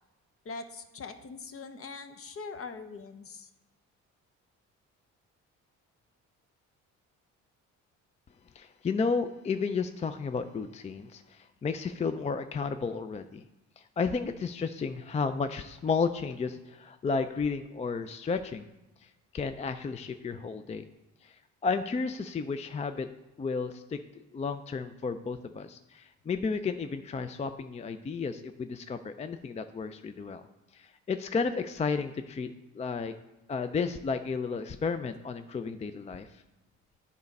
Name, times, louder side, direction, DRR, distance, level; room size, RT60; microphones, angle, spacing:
voice 1, 0.4-3.5, left 4 dB, 50° left, 9 dB, 0.8 m, -42 dB
voice 2, 8.6-13.5 13.8-18.7 19.0-20.8 21.2-23.1 23.4-24.0 24.3-30.4 30.7-33.1 33.5-36.3, left 5 dB, 25° left, 10 dB, 0.4 m, -32 dB
9.5 x 4.1 x 5.3 m, 1.0 s
cardioid pair, 90°, 30 cm